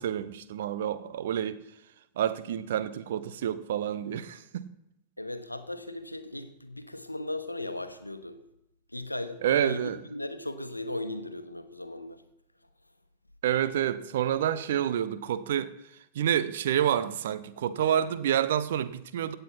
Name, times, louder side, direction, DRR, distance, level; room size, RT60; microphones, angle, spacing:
voice 1, 0.0-1.6 2.2-4.7 9.4-10.0 13.4-15.7 16.1-19.3, right 10 dB, 60° right, 0.9 m, -28 dB
voice 2, 5.2-8.4 8.9-12.2, left 1 dB, 85° left, 1.1 m, -37 dB
16.0 x 8.2 x 5.7 m
figure-of-eight pair, 90°, 0 cm